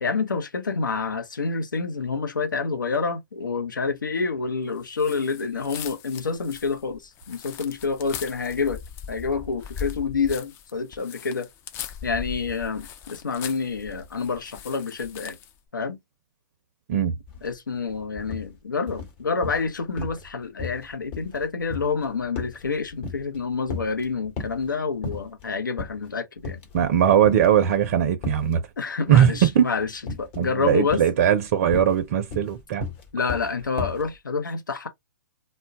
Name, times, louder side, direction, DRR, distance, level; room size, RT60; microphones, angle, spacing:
voice 1, 0.0-8.8 9.1-11.5 12.0-15.4 15.7-16.0 17.4-26.6 28.8-31.0 33.1-34.9, left 4 dB, 85° left, 0.8 m, -28 dB
sound 1, 4.9-15.6, left 7 dB, 25° left, 0.4 m, -39 dB
sound 2, 17.3-17.5 17.8-18.5 18.9-19.7 20.0-20.3 20.6-23.4 23.7-24.7 25.0-25.5 25.8-26.0 26.4-27.0 27.2-28.6 29.1-29.5 30.1-30.5 30.9-34.1, left 4 dB, 40° left, 1.0 m, -34 dB
voice 2, 26.7-28.6 29.1-29.6 30.4-32.9, right 10 dB, 45° right, 0.5 m, -20 dB
2.2 x 2.1 x 3.8 m
hypercardioid pair, 125°, 10 cm